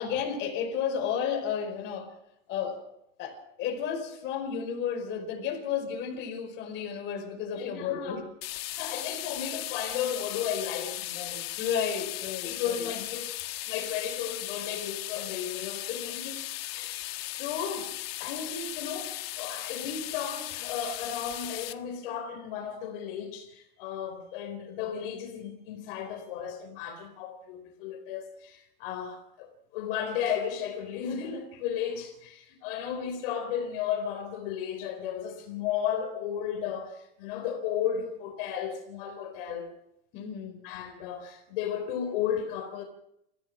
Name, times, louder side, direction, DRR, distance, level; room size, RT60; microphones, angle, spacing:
voice 1, 0.0-2.1 2.5-2.8 3.2-8.2 11.6-12.9 40.1-40.6, left 7 dB, 40° left, 5.3 m, -32 dB
voice 2, 7.6-8.2 8.7-11.5 12.0-12.1 12.4-13.3 13.7-16.5 16.7-17.1 17.4-39.7 40.6-42.8, left 8 dB, 65° left, 3.7 m, -34 dB
sound 1, 8.4-21.7, left 17 dB, 80° left, 1.5 m, -37 dB
28.0 x 15.5 x 6.2 m
supercardioid pair, 165°, 30 cm